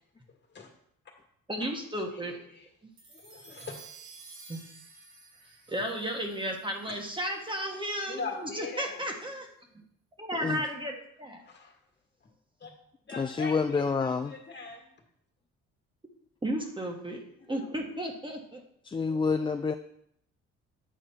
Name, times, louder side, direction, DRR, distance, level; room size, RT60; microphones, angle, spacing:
voice 1, 1.5-2.4 4.5-4.6 5.7-9.5 10.2-11.4 16.4-18.6, right 1 dB, 15° right, 2 dB, 1.3 m, -34 dB
voice 2, 2.1-2.7 3.1-3.7 8.1-9.0 11.5-11.8 12.6-12.7 13.1-14.9 17.6-17.7, left 4 dB, 35° left, 2 dB, 1.9 m, -41 dB
Magic wand, 3.0-7.5, right 4 dB, 90° right, 2.8 m, -52 dB
voice 3, 13.2-14.3 18.9-19.7, left 4 dB, 15° left, 6 dB, 0.3 m, -28 dB
8.5 x 4.8 x 4.4 m, 0.72 s
cardioid pair, 90°, 30 cm